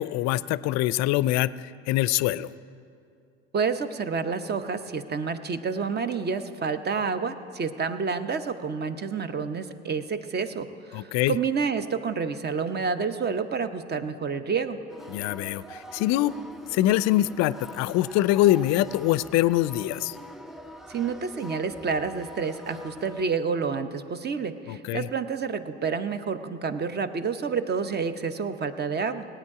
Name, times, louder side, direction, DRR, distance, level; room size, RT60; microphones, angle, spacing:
voice 1, 0.0-2.5 10.9-11.3 15.1-16.3 16.7-20.1 24.7-25.1, left 15 dB, 55° left, 19 dB, 0.5 m, -24 dB
voice 2, 3.5-14.8 20.9-29.3, right 5 dB, 30° right, 11 dB, 0.8 m, -29 dB
sound 1, 14.9-23.3, left 1 dB, ahead, 0.7 m, -44 dB
18.5 x 8.9 x 4.9 m, 2.5 s
hypercardioid pair, 70°, 31 cm